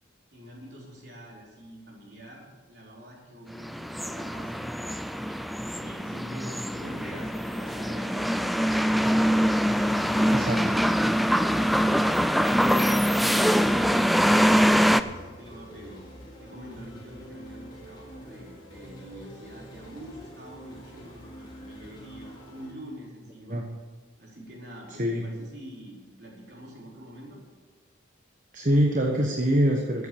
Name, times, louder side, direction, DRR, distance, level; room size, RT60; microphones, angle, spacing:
voice 1, 0.3-5.4 5.7-9.1 9.7-10.8 11.4-16.0 16.4-23.6 24.2-27.4, equal, 55° right, -3 dB, 4.4 m, -45 dB
sound 1, 3.6-15.0, equal, ahead, 0.3 m, -23 dB
sound 2, 6.7-22.7, equal, 25° left, 4.3 m, -46 dB
voice 2, 28.5-30.1, equal, 40° right, 2 dB, 1.2 m, -24 dB
14.0 x 8.5 x 7.1 m, 1.4 s
head